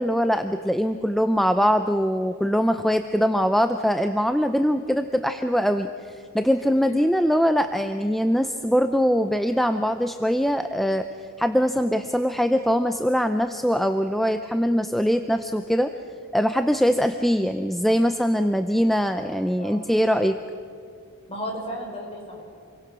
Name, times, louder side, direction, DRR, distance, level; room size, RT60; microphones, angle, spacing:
voice 1, 0.0-11.1 11.4-15.9 16.3-20.4, equal, ahead, 8 dB, 0.5 m, -22 dB
voice 2, 19.6-19.9 21.3-22.4, equal, 25° left, -1 dB, 5.7 m, -34 dB
28.0 x 22.5 x 6.1 m, 2.3 s
head